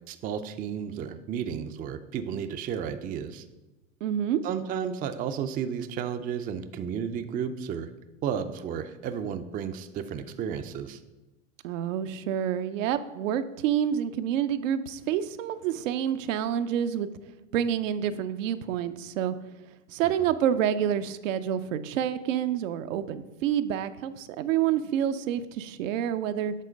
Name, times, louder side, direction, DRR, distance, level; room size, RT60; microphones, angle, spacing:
voice 1, 0.1-3.4 4.4-7.9 8.2-11.0 20.0-20.1, right 8 dB, 25° right, 9 dB, 0.3 m, -33 dB
voice 2, 4.0-4.4 11.6-17.1 17.5-19.4 19.9-26.5, right 9 dB, 80° right, 11 dB, 0.5 m, -28 dB
7.5 x 3.7 x 5.1 m, 1.1 s
hypercardioid pair, 105°, 38 cm